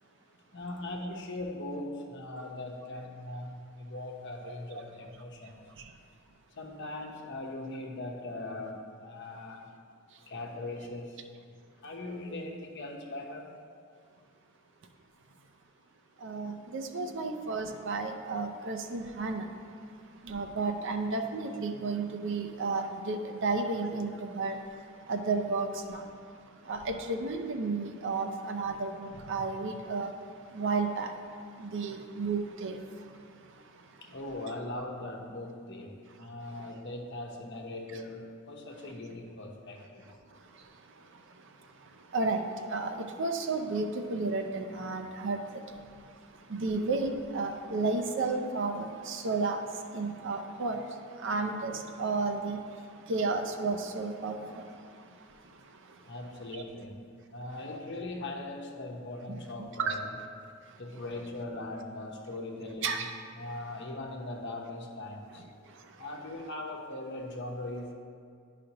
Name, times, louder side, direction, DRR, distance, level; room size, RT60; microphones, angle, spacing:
voice 1, 0.5-5.6 6.6-9.7 10.3-11.3 11.8-13.5 16.5-16.6 17.0-17.1 34.0-40.1 56.1-57.0 57.3-60.5 60.8-62.9 63.3-65.4 66.0-67.9, left 2 dB, 60° left, 1 dB, 0.9 m, -40 dB
voice 2, 16.2-34.2 36.1-36.3 36.6-36.7 37.9-38.0 40.3-56.1 56.5-56.6 59.7-60.0 60.7-60.8 62.8-63.1 65.7-66.0, right 3 dB, 60° right, 5 dB, 0.6 m, -34 dB
10.5 x 5.0 x 2.9 m, 2.2 s
head